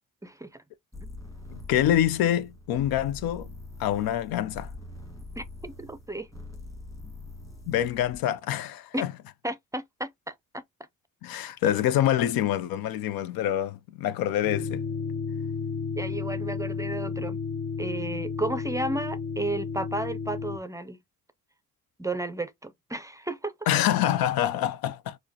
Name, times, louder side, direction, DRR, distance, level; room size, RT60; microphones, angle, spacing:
voice 1, 0.2-0.5 1.0-1.1 5.4-6.3 7.0-7.1 8.9-9.0 9.4-10.6 16.0-17.4 17.8-21.0 22.0-23.5, right 2 dB, 10° right, 0.4 m, -33 dB
sound 1, 0.9-8.2, left 2 dB, 10° left, 1.6 m, -43 dB
voice 2, 1.5-3.5 3.8-4.7 7.7-9.1 11.2-14.8 23.7-25.2, left 11 dB, 85° left, 0.5 m, -26 dB
sound 2, 14.4-20.6, left 5 dB, 35° left, 0.7 m, -32 dB
4.7 x 2.2 x 2.7 m
cardioid pair, 80°, 35 cm